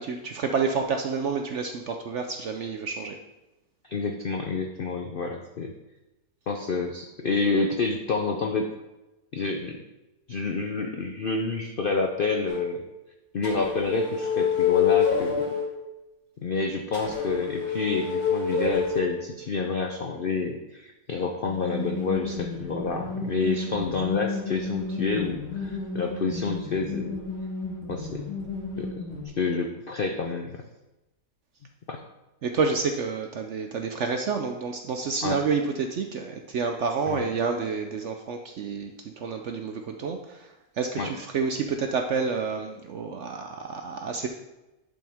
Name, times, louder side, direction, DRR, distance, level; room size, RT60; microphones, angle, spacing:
voice 1, 0.0-3.2 32.4-44.3, right 5 dB, 70° right, 4 dB, 0.7 m, -29 dB
voice 2, 3.8-5.7 6.5-8.7 9.3-9.8 10.3-12.8 13.3-15.5 16.4-27.2 27.9-28.3 28.8-29.0 29.4-30.6 31.9-32.0 35.2-35.4 37.1-37.3 41.0-41.1, left 4 dB, 75° left, 4 dB, 0.5 m, -28 dB
sound 1, 12.5-12.6 13.4-15.6 16.9-19.1 21.4-29.2, left 6 dB, 40° left, 2.0 m, -29 dB
11.0 x 5.3 x 3.5 m, 1.0 s
omnidirectional pair, 1.7 m